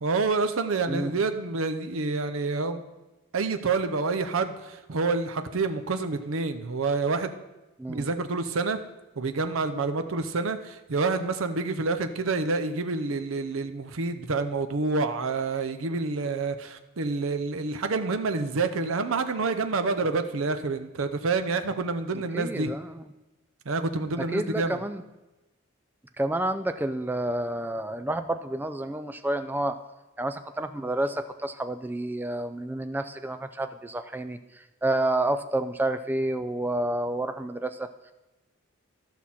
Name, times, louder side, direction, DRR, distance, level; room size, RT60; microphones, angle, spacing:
voice 1, 0.0-2.8 3.3-7.3 7.9-8.8 9.2-22.7 23.7-24.8, right 3 dB, 75° right, 8 dB, 0.7 m, -28 dB
voice 2, 22.3-23.1 24.2-25.0 26.2-29.8 30.2-38.1, right 1 dB, 10° right, 9 dB, 0.3 m, -29 dB
13.5 x 5.9 x 4.2 m, 1.0 s
head